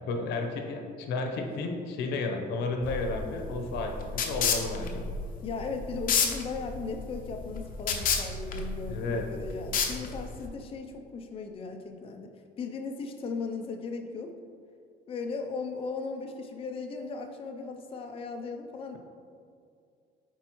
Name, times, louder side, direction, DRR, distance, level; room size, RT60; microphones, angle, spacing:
voice 1, 0.1-5.0 8.9-9.3, left 3 dB, 80° left, 4 dB, 0.9 m, -32 dB
sound 1, 2.8-10.5, left 5 dB, 55° left, 0.8 m, -31 dB
voice 2, 5.4-14.4 15.1-19.0, left 4 dB, 35° left, 4 dB, 0.5 m, -37 dB
9.0 x 4.3 x 3.0 m, 2.3 s
cardioid pair, 110°, 17 cm